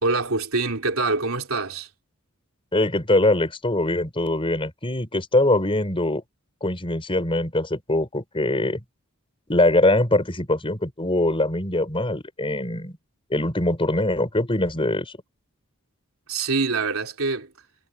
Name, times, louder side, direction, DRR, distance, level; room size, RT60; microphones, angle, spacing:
voice 1, 0.0-1.9 16.3-17.5, right 3 dB, 75° right, 3.5 m, -25 dB
voice 2, 2.7-6.2 6.6-8.8 9.5-13.0 13.3-15.1, left 1 dB, 25° left, 4.5 m, -22 dB
head